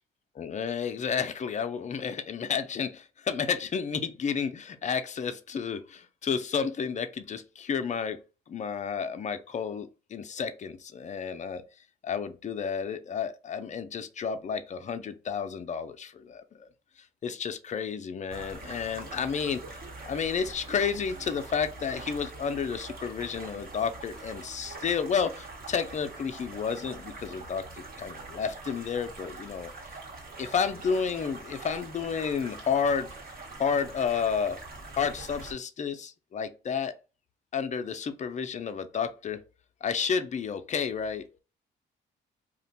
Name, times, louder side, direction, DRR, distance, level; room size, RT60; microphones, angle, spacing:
voice 1, 0.4-8.2 8.5-11.6 12.0-16.7 17.2-19.6 20.0-29.7 30.4-33.1 33.6-34.6 34.9-36.9 37.5-39.4 39.8-41.2, left 6 dB, 35° left, 0.5 m, -31 dB
sound 1, 18.3-35.5, right 3 dB, 50° right, 1.0 m, -44 dB
2.5 x 2.1 x 3.9 m
cardioid pair, 90°, 20 cm